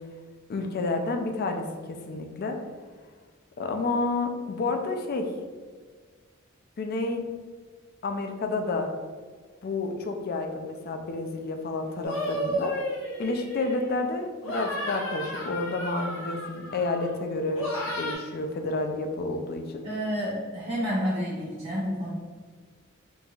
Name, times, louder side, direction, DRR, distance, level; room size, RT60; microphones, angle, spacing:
voice 1, 0.5-2.6 3.6-5.3 6.8-7.3 8.0-8.9 9.6-12.7 13.2-17.7 18.0-19.8, left 3 dB, 50° left, 5 dB, 0.4 m, -30 dB
sound 1, 12.0-14.0 14.4-17.1 17.6-18.1, equal, 75° left, 0.8 m, -33 dB
voice 2, 19.8-22.1, equal, 50° right, -9 dB, 0.8 m, -29 dB
3.9 x 2.8 x 2.3 m, 1.5 s
head